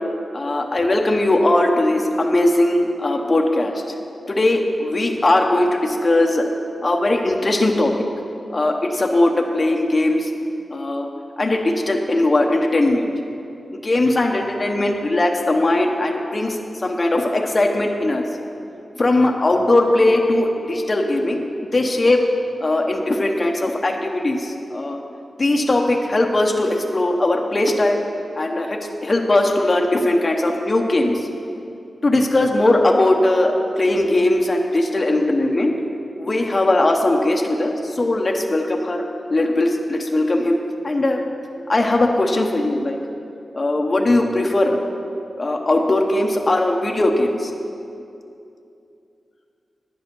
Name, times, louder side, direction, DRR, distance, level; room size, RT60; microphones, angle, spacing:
voice 1, 0.3-3.7 4.3-6.4 6.8-7.9 8.5-10.3 10.7-11.1 11.4-13.1 13.7-18.3 19.0-21.5 21.7-22.2 22.6-25.0 25.4-28.0 28.4-31.2 32.0-35.7 36.2-39.0 39.3-40.6 40.8-41.2 41.7-43.0 43.5-44.8 45.4-47.5, left 2 dB, 30° left, 1 dB, 0.8 m, -19 dB
10.0 x 7.8 x 6.0 m, 2.6 s
wide cardioid pair, 115°, 0 cm